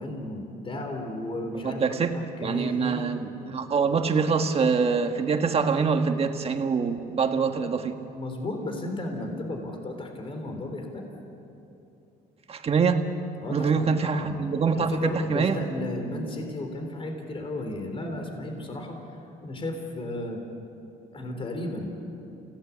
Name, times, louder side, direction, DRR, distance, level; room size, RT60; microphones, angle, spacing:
voice 1, 0.0-3.1 8.2-11.1 13.4-14.4 14.8-19.0 19.4-20.4 21.1-21.9, left 1 dB, 30° left, 4 dB, 3.8 m, -34 dB
voice 2, 1.6-2.1 2.4-7.9 12.5-13.1 13.5-15.6, right 5 dB, 35° right, 6 dB, 1.7 m, -25 dB
29.0 x 17.5 x 8.4 m, 2.8 s
cardioid pair, 110°, 17 cm